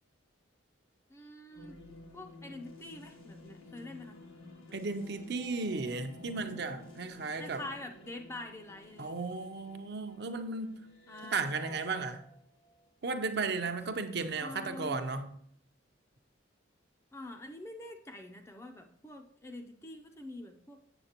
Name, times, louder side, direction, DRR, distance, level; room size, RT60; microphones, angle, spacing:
voice 1, 1.1-1.8 2.1-4.2 4.7-4.8 7.3-9.1 11.1-12.1 14.4-15.0 17.1-20.8, left 1 dB, 15° left, 4 dB, 0.4 m, -46 dB
sound 1, 1.5-13.3, left 2 dB, 85° left, 1.7 m, -53 dB
voice 2, 4.7-7.6 9.0-10.8 11.3-12.2 13.0-15.3, right 4 dB, 55° right, 6 dB, 0.6 m, -35 dB
7.9 x 7.3 x 2.9 m, 0.67 s
head